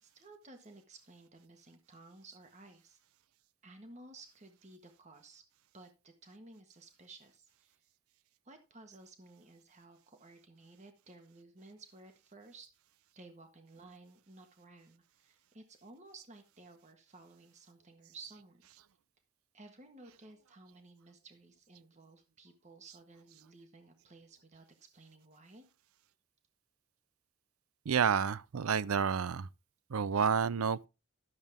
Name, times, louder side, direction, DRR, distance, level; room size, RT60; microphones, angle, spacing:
voice 1, 0.0-3.0 3.6-5.4 5.7-7.8 8.4-12.7 13.1-18.6 19.5-24.6 24.9-25.6, right 2 dB, 35° right, 1.5 m, -55 dB
voice 2, 27.9-29.5 29.9-30.9, right 6 dB, 85° right, 0.5 m, -30 dB
12.5 x 7.4 x 3.6 m
head